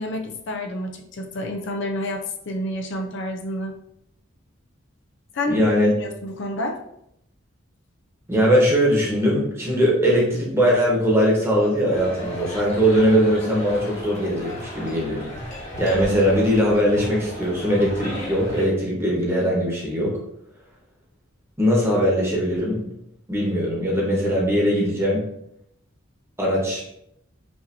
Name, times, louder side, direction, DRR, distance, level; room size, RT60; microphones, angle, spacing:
voice 1, 0.0-3.7 5.3-5.6 6.0-6.8, left 1 dB, 65° left, 3 dB, 0.5 m, -29 dB
voice 2, 5.5-5.9 8.3-15.3 15.8-20.2 21.6-22.9 23.3-25.3 26.4-27.0, equal, 15° right, -4 dB, 1.2 m, -20 dB
sound 1, 11.9-18.7, left 1 dB, 35° left, 1.4 m, -35 dB
5.5 x 2.8 x 2.7 m, 0.78 s
head